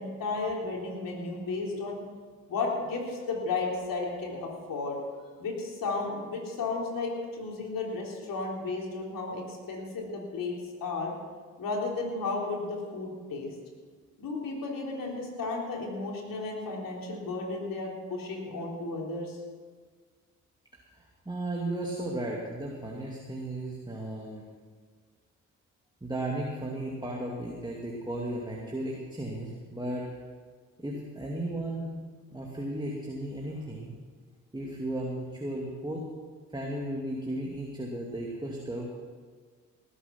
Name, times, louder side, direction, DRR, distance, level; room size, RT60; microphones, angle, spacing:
voice 1, 0.0-2.0 2.5-5.0 5.4-10.5 10.8-11.1 11.6-13.5 14.2-19.4, left 3 dB, 65° left, -2 dB, 3.8 m, -33 dB
voice 2, 20.9-24.4 26.0-30.0 30.8-31.9 32.3-34.0 34.5-36.0 36.5-38.9, right 1 dB, 10° right, -2 dB, 2.5 m, -35 dB
18.5 x 8.4 x 6.0 m, 1.6 s
hypercardioid pair, 45°, 37 cm